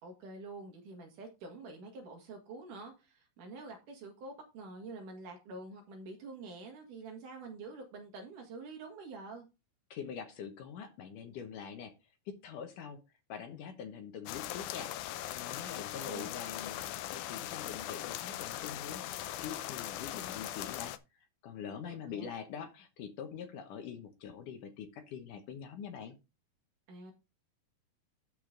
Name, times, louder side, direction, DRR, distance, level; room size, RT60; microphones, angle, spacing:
voice 1, 0.0-9.4 15.7-16.3 21.8-22.3 26.9-27.1, right 3 dB, 60° right, 3 dB, 3.3 m, -47 dB
voice 2, 9.9-12.0 12.3-13.0 13.3-14.9 15.3-16.8 17.1-26.2, left 7 dB, 70° left, 6 dB, 2.4 m, -44 dB
sound 1, 14.3-21.0, left 13 dB, 85° left, 1.8 m, -40 dB
12.0 x 5.1 x 3.8 m, 0.27 s
omnidirectional pair, 4.3 m